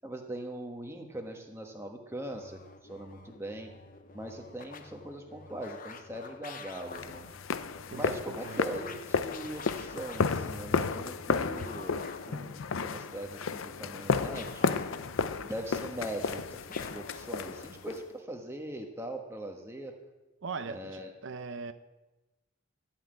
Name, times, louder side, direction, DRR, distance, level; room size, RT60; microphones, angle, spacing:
voice 1, 0.0-3.7 4.1-7.3 7.9-12.0 12.3-14.8 15.4-19.9 20.7-21.1, right 1 dB, 15° right, 3 dB, 1.3 m, -41 dB
sound 1, 2.3-17.9, left 4 dB, 40° left, 0.7 m, -49 dB
sound 2, 6.9-18.0, left 5 dB, 80° left, 0.6 m, -33 dB
voice 2, 7.9-8.6 20.4-21.7, right 4 dB, 65° right, 10 dB, 0.6 m, -40 dB
13.5 x 5.8 x 8.9 m, 1.1 s
head